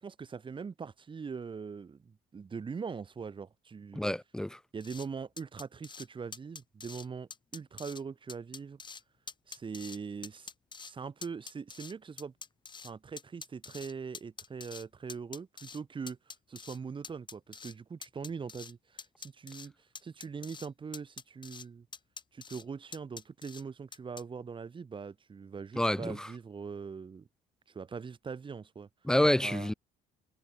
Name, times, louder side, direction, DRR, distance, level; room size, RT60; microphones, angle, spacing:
voice 1, 0.0-4.0 4.7-8.8 9.5-10.5 10.8-12.3 12.8-16.2 16.5-19.7 20.0-21.9 22.3-27.3 27.7-28.9 29.4-29.7, right 5 dB, 30° right, 2.0 m, -42 dB
voice 2, 4.0-4.6 25.8-26.3 29.0-29.7, left 1 dB, 5° left, 0.3 m, -28 dB
sound 1, 4.8-5.1 5.4-6.1 6.3-7.1 7.3-8.0 8.3-9.0 9.3-10.0 10.2-10.9 11.2-12.9 13.2-14.8 15.1-15.8 16.1-16.8 17.0-17.7 18.0-18.7 19.0-19.7 20.0-20.7 20.9-21.7 21.9-22.6 22.9-23.6 23.9-24.2, left 5 dB, 25° left, 1.5 m, -46 dB
cardioid pair, 110°, 17 cm